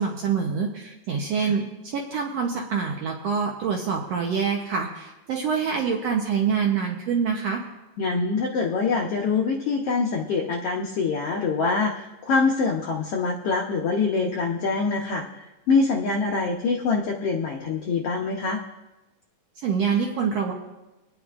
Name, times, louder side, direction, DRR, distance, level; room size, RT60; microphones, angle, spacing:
voice 1, 0.0-1.6 1.9-7.6 19.6-20.5, right 6 dB, 70° right, 1 dB, 1.6 m, -25 dB
voice 2, 8.0-18.6, left 4 dB, 75° left, 0 dB, 1.3 m, -25 dB
26.5 x 9.7 x 2.4 m, 1.0 s
omnidirectional pair, 3.8 m